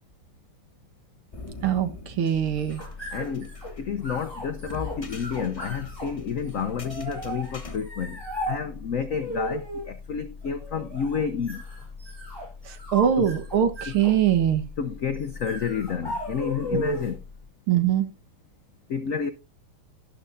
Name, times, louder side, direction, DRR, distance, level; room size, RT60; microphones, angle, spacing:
sound 1, 1.3-7.8, left 3 dB, 40° left, 0.5 m, -43 dB
voice 1, 1.6-2.8 12.7-14.6 16.7-16.8 17.7-18.1, right 10 dB, 75° right, 2.2 m, -23 dB
sound 2, 2.4-17.3, equal, 10° left, 7.4 m, -36 dB
voice 2, 3.1-11.6 13.2-13.3 14.8-17.2 18.9-19.3, left 6 dB, 70° left, 0.7 m, -30 dB
12.0 x 11.5 x 2.6 m
omnidirectional pair, 2.4 m